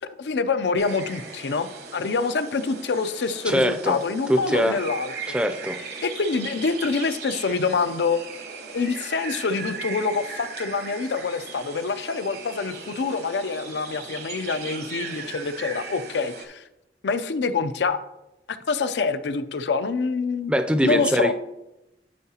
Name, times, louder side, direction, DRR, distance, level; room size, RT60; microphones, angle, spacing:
voice 1, 0.2-5.3 6.0-8.2 8.7-16.6 17.0-18.0 18.5-20.5 20.8-21.3, left 4 dB, 80° left, 11 dB, 0.5 m, -26 dB
sound 1, 0.8-16.5, right 4 dB, 65° right, 1.0 m, -38 dB
voice 2, 3.5-4.0 4.3-4.8 5.3-5.8 20.5-21.3, equal, 5° right, 7 dB, 0.4 m, -22 dB
11.5 x 4.7 x 2.8 m, 0.92 s
head